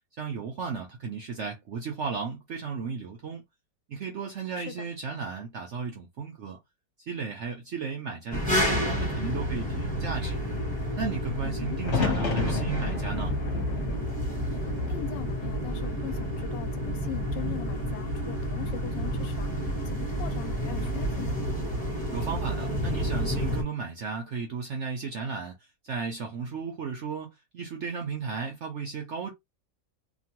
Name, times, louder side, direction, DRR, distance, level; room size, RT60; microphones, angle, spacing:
voice 1, 0.2-3.4 3.9-6.6 7.1-10.4 11.0-13.3 22.1-25.5 25.8-29.3, right 5 dB, 65° right, 0.7 m, -34 dB
sound 1, 8.3-23.6, equal, 5° left, 0.6 m, -30 dB
voice 2, 11.4-11.8 14.5-21.4, left 12 dB, 90° left, 1.3 m, -41 dB
sound 2, 11.8-15.9 16.2-17.0 18.9-19.3, left 4 dB, 50° left, 1.2 m, -33 dB
2.9 x 2.3 x 2.9 m
omnidirectional pair, 1.9 m